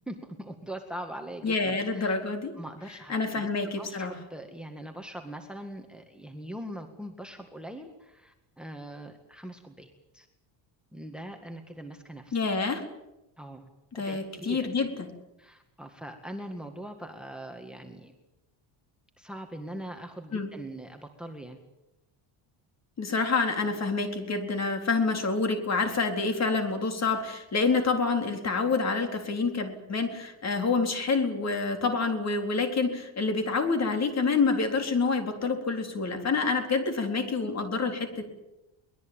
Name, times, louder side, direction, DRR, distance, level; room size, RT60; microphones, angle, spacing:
voice 1, 0.1-2.2 2.6-10.3 10.9-12.4 13.4-13.7 13.9-15.0 15.4-18.1 19.2-21.6, right 1 dB, ahead, 6 dB, 2.0 m, -42 dB
voice 2, 1.4-2.5 3.1-4.2 12.3-12.9 13.9-15.1 20.3-20.5 23.0-38.2, left 4 dB, 35° left, 6 dB, 4.2 m, -27 dB
23.5 x 20.5 x 9.1 m, 0.96 s
cardioid pair, 130°, 46 cm